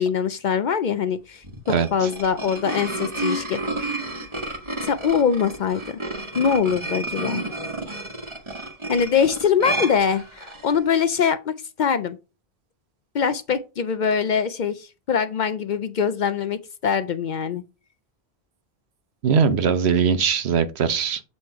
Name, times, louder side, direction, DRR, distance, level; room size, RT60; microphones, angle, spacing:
voice 1, 0.0-3.6 4.8-6.0 6.4-7.4 8.9-11.5 11.8-12.2 13.1-17.6, left 7 dB, 60° left, 0.6 m, -23 dB
sound 1, 1.4-10.8, right 2 dB, 30° right, 1.2 m, -31 dB
voice 2, 1.7-2.1 19.2-21.2, right 6 dB, 80° right, 1.1 m, -21 dB
7.8 x 3.2 x 4.5 m
omnidirectional pair, 1.1 m